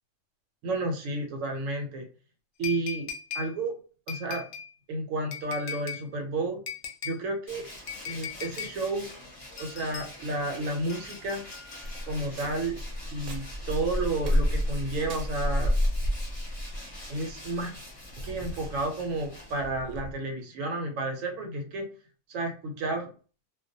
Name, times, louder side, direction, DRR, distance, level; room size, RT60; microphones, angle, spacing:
voice 1, 0.6-2.1 2.6-3.1 3.3-3.8 4.1-4.5 4.9-6.6 7.0-7.6 8.1-9.1 9.6-11.4 12.1-12.8 13.1-15.8 17.1-17.8 18.2-21.9 22.3-23.1, right 2 dB, 80° right, 3 dB, 1.0 m, -31 dB
sound 1, 2.6-3.5 4.1-4.7 5.3-6.0 6.7-7.2 7.9-8.7 9.6-10.1 10.9-12.1 13.1-13.2, left 7 dB, 65° left, 0.8 m, -39 dB
Tools, 7.5-20.0, left 1 dB, 30° left, 0.8 m, -46 dB
sound 2, 11.8-20.1, left 1 dB, 60° right, 0.6 m, -30 dB
2.2 x 2.2 x 2.6 m, 0.38 s
omnidirectional pair, 1.4 m